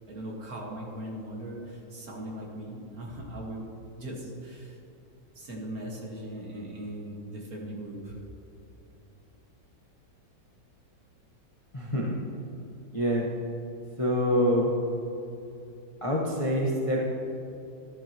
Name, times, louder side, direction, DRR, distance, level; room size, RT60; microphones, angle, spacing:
voice 1, 0.1-3.6 4.0-4.8 5.4-8.2, right 1 dB, 50° right, -2 dB, 2.0 m, -39 dB
voice 2, 11.7-12.2 12.9-13.3 14.0-14.7 16.0-17.0, equal, 25° left, -3 dB, 0.9 m, -26 dB
14.0 x 11.0 x 3.0 m, 2.9 s
omnidirectional pair, 2.1 m